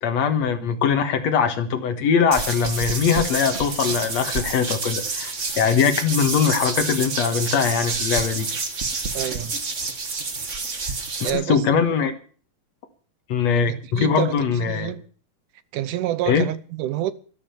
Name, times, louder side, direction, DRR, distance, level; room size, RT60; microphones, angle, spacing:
voice 1, 0.0-8.5 11.2-12.1 13.3-14.9 16.3-16.4, left 6 dB, 60° left, 2.4 m, -21 dB
sound 1, 2.3-11.3, right 4 dB, 40° right, 1.0 m, -28 dB
voice 2, 9.1-9.5 11.2-11.6 13.7-14.4 14.7-15.0 15.7-17.1, right 13 dB, 75° right, 2.2 m, -27 dB
12.5 x 12.0 x 6.9 m
omnidirectional pair, 4.0 m